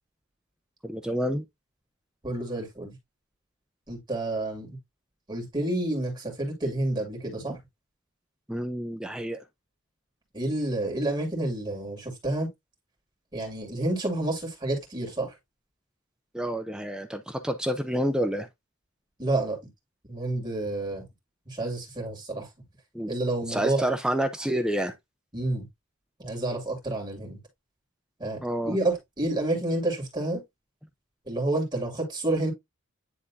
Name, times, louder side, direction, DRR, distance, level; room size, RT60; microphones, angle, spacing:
voice 1, 0.8-1.4 8.5-9.4 16.3-18.5 22.9-23.1 23.5-24.9 28.4-28.8, equal, 5° right, 0.5 m, -28 dB
voice 2, 2.2-2.9 3.9-4.7 5.3-7.6 10.3-12.5 13.3-15.3 19.2-19.6 20.1-21.0 21.5-22.5 23.0-23.9 25.3-25.7 26.2-27.4 28.2-28.4 28.7-30.4 31.2-32.5, right 2 dB, 20° right, 2.6 m, -29 dB
9.9 x 3.6 x 2.7 m
head